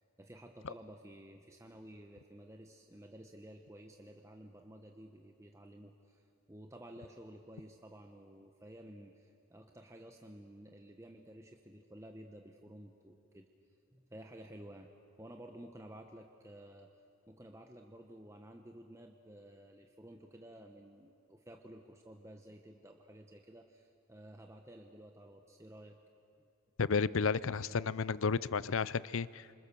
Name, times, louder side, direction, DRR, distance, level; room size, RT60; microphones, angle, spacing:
voice 1, 0.0-13.5 13.9-14.9 15.2-16.9 17.3-26.0 26.4-26.5, right 1 dB, 15° right, 3 dB, 1.0 m, -53 dB
voice 2, 26.8-29.5, left 5 dB, 65° left, 18 dB, 0.5 m, -32 dB
28.5 x 25.5 x 6.9 m, 2.4 s
head